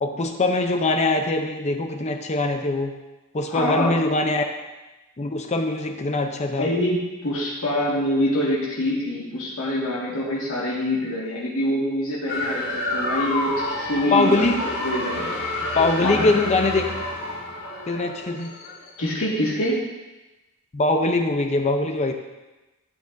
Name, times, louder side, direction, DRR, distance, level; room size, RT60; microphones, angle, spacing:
voice 1, 0.0-3.0 3.3-4.5 5.2-6.7 14.1-14.6 15.7-17.0 17.9-18.5 20.7-22.1, left 2 dB, 30° left, 5 dB, 0.6 m, -22 dB
voice 2, 3.5-3.9 6.6-15.3 16.0-16.3 19.0-19.8, left 1 dB, 70° left, -6 dB, 1.9 m, -25 dB
sound 1, 12.3-18.9, left 1 dB, 50° left, 1.7 m, -29 dB
12.0 x 8.5 x 2.6 m, 1.1 s
head